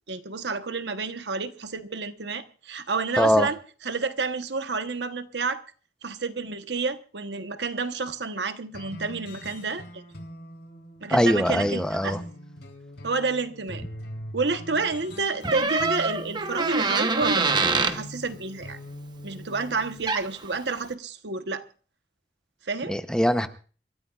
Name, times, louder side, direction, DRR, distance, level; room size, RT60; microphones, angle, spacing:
voice 1, 0.1-3.6 3.8-5.6 6.0-10.0 11.0-12.1 13.0-13.8 14.3-18.8 19.2-21.7 22.7-23.0, right 4 dB, 75° right, 1.1 m, -30 dB
voice 2, 3.2-3.5 11.1-12.2 22.9-23.5, equal, 5° left, 0.8 m, -22 dB
sound 1, 8.7-20.0, equal, 70° left, 3.6 m, -42 dB
Door, 15.4-18.0 19.8-19.9 20.1-20.4, right 4 dB, 25° right, 1.0 m, -25 dB
27.5 x 14.0 x 2.4 m
head